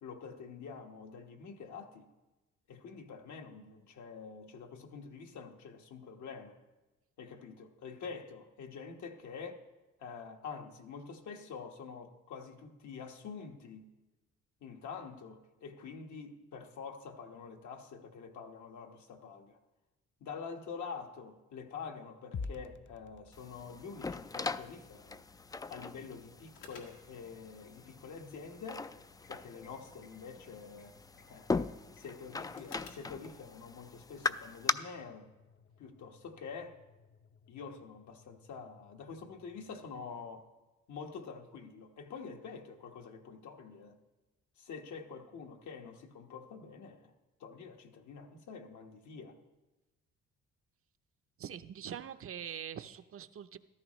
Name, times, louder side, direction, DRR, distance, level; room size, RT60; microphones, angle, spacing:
voice 1, 0.0-2.1 2.7-6.6 7.2-9.6 10.0-13.9 14.6-19.6 20.2-25.2 25.7-28.9 29.3-31.5 31.9-35.3 35.8-36.8 37.5-40.5 40.9-44.0 44.6-47.1 47.4-49.4, left 5 dB, 70° left, 1.4 m, -47 dB
sound 1, 22.3-40.6, left 4 dB, 40° left, 0.7 m, -54 dB
sound 2, 23.3-34.7, left 4 dB, 15° left, 0.3 m, -40 dB
sound 3, 26.5-33.2, left 5 dB, 85° left, 2.0 m, -60 dB
voice 2, 51.4-53.6, right 9 dB, 45° right, 0.6 m, -43 dB
14.5 x 13.0 x 3.1 m
cardioid pair, 90°, 30 cm